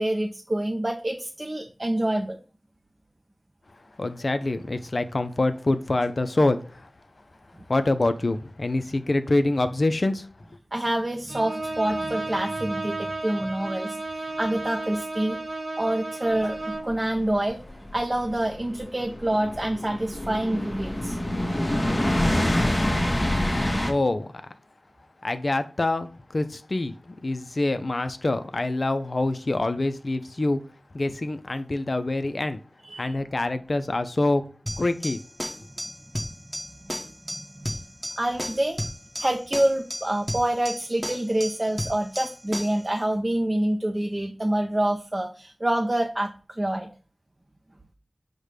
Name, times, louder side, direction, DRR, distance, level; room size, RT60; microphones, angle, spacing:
voice 1, 0.0-2.4 10.7-15.4 15.8-17.6 17.9-21.2 32.8-33.1 37.3-37.8 38.2-38.8 39.2-46.9, right 1 dB, 30° right, 0.5 m, -27 dB
voice 2, 4.0-6.9 7.7-10.3 23.6-24.3 25.2-30.6 30.9-32.6 33.0-34.4 34.8-35.2, left 2 dB, 55° left, 0.4 m, -25 dB
Bowed string instrument, 11.3-17.0, right 2 dB, 80° right, 0.9 m, -33 dB
sound 1, 16.9-23.9, left 1 dB, 30° left, 1.1 m, -26 dB
sound 2, 34.7-42.9, equal, 5° right, 1.0 m, -34 dB
4.9 x 2.2 x 4.8 m
wide cardioid pair, 45°, 0 cm